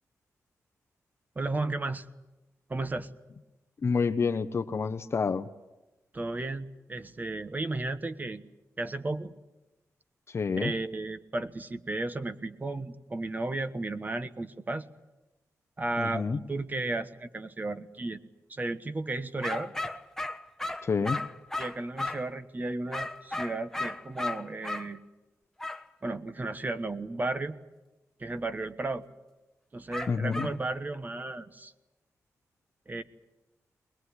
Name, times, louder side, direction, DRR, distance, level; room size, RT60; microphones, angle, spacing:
voice 1, 1.3-2.1 2.7-3.1 6.1-8.4 8.8-9.3 10.6-14.9 15.8-18.2 18.5-19.7 21.6-25.0 26.0-27.6 28.2-29.0 29.7-31.7 32.9-33.0, right 2 dB, 30° right, 11 dB, 1.3 m, -34 dB
voice 2, 3.8-5.5 10.3-10.7 16.0-16.4 20.8-21.2 30.1-30.5, left 5 dB, 45° left, 7 dB, 0.9 m, -28 dB
sound 1, 19.4-22.3 22.9-24.9 25.6-25.8 29.9-30.6, left 2 dB, 5° left, 1.2 m, -35 dB
21.5 x 21.5 x 9.9 m, 1.0 s
cardioid pair, 85°, 6 cm